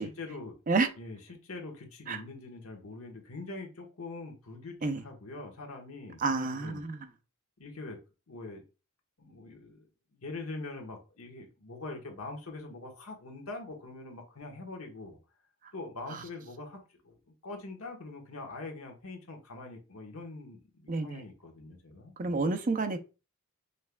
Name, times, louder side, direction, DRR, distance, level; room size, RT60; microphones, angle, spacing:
voice 1, 0.0-0.5 1.0-6.8 7.6-8.0 8.3-8.6 9.2-9.9 10.1-15.2 15.7-17.1 17.4-22.4, left 3 dB, 75° left, 1.2 m, -43 dB
voice 2, 6.2-7.0 16.1-16.2 20.9-21.2 22.2-23.0, right 3 dB, 35° right, 0.5 m, -29 dB
5.5 x 3.4 x 2.2 m
head